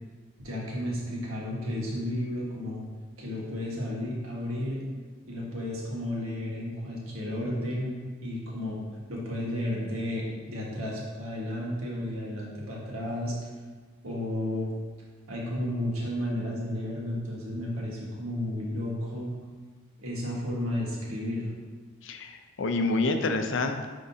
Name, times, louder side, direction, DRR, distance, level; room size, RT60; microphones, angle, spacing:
voice 1, 0.4-2.8 3.2-4.8 5.3-8.0 8.2-8.8 9.1-13.4 14.0-14.7 15.3-19.3 20.0-21.5, left 1 dB, 85° right, -3 dB, 1.5 m, -32 dB
voice 2, 22.0-23.9, left 3 dB, 60° left, 6 dB, 0.5 m, -28 dB
9.4 x 3.7 x 2.7 m, 1.4 s
head